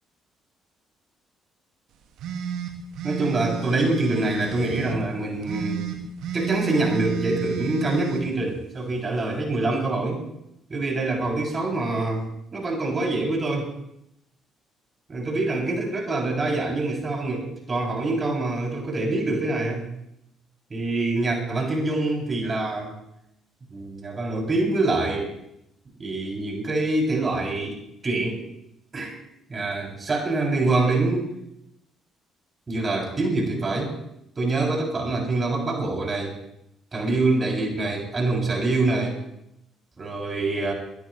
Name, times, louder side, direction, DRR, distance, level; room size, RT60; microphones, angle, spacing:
sound 1, 2.2-5.0 5.4-8.2, right 7 dB, 60° right, 2.2 m, -31 dB
voice 1, 3.0-5.8 6.3-10.2 10.7-12.3 12.5-13.7 15.1-19.9 20.7-23.0 23.7-25.3 26.0-28.4 28.9-29.1 29.5-31.3 32.7-33.9 34.4-36.3 36.9-39.2 40.0-40.7, right 2 dB, 30° right, 0 dB, 7.4 m, -25 dB
21.5 x 19.5 x 3.3 m, 0.78 s
figure-of-eight pair, 45°, 0 cm